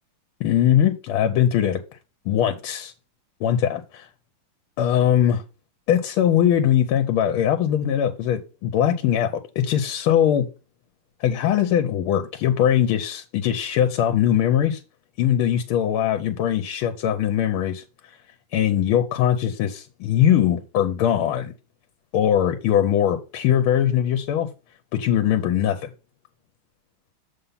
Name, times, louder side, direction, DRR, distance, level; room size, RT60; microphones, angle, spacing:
voice 1, 0.4-1.8 2.3-2.9 3.4-4.1 4.8-5.4 5.9-10.5 11.2-14.8 15.2-17.8 18.5-21.5 22.1-24.5 24.9-25.9, left 10 dB, 90° left, 1.5 m, -21 dB
6.9 x 3.7 x 5.5 m
omnidirectional pair, 2.3 m